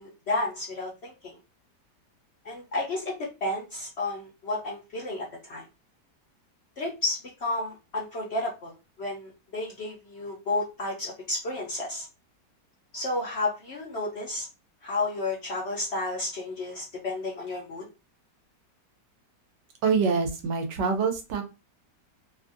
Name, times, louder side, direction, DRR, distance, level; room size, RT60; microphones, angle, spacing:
voice 1, 0.0-1.4 2.4-5.7 6.8-8.7 9.0-12.1 12.9-14.5 14.8-17.9, left 2 dB, 60° left, -2 dB, 0.7 m, -32 dB
voice 2, 19.8-21.4, right 5 dB, 90° right, 5 dB, 1.3 m, -25 dB
3.1 x 2.5 x 2.4 m, 0.28 s
omnidirectional pair, 1.8 m